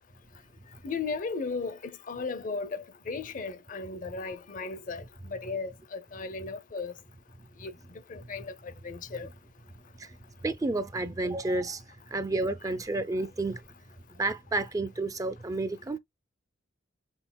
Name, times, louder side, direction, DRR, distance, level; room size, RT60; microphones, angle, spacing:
voice 1, 0.8-1.8 2.1-6.9 7.6-7.7 8.1-9.3, left 4 dB, 40° left, 0.5 m, -36 dB
voice 2, 10.4-13.6 14.1-16.0, right 2 dB, 15° right, 0.3 m, -31 dB
6.3 x 3.2 x 2.2 m
head